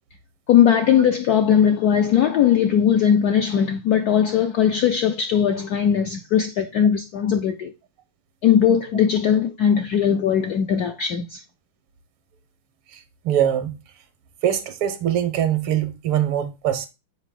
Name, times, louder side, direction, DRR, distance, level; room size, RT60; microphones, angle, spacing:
voice 1, 0.5-7.7 8.4-11.4, left 8 dB, 75° left, 0.8 m, -19 dB
voice 2, 12.9-13.8 14.4-16.9, right 10 dB, 85° right, 1.9 m, -23 dB
7.0 x 4.9 x 3.7 m
omnidirectional pair, 2.3 m